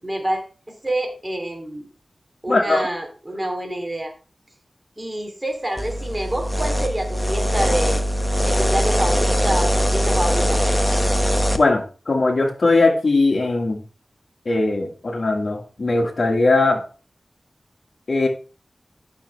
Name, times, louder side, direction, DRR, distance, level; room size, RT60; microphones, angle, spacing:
voice 1, 0.0-1.9 2.4-4.1 5.0-8.0 8.4-10.6, right 1 dB, 25° right, 3 dB, 2.9 m, -27 dB
voice 2, 2.5-2.9 11.5-13.8 14.4-16.8 18.1-18.3, left 3 dB, 70° left, 3 dB, 1.8 m, -19 dB
sound 1, 5.8-11.6, equal, 10° left, 1.1 m, -21 dB
11.5 x 6.6 x 3.3 m, 0.35 s
wide cardioid pair, 60°, 0 cm